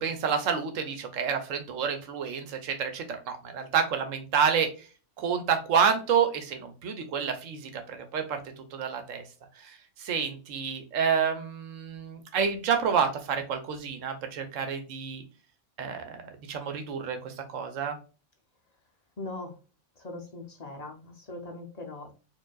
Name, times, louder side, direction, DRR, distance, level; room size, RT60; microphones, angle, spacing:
voice 1, 0.0-4.9 5.2-9.2 9.6-15.2 15.8-16.2 16.5-18.0, right 7 dB, 85° right, 7 dB, 1.1 m, -29 dB
voice 2, 19.2-19.6 20.0-22.1, left 2 dB, 40° left, 2 dB, 0.7 m, -40 dB
4.6 x 2.5 x 2.3 m, 0.35 s
omnidirectional pair, 1.3 m